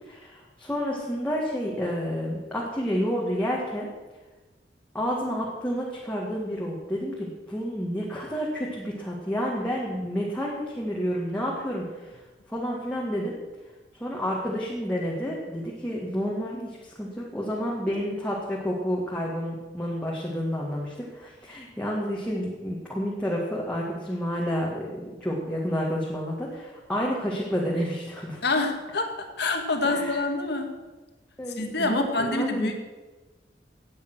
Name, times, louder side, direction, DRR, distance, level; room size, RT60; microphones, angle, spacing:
voice 1, 0.1-3.9 4.9-12.2 12.5-13.3 14.0-24.9 25.2-28.4 29.8-30.1 31.4-32.7, equal, 5° left, -4 dB, 2.1 m, -30 dB
voice 2, 28.4-30.8 31.6-32.7, left 2 dB, 60° left, 4 dB, 2.1 m, -26 dB
17.0 x 9.0 x 6.3 m, 1.2 s
head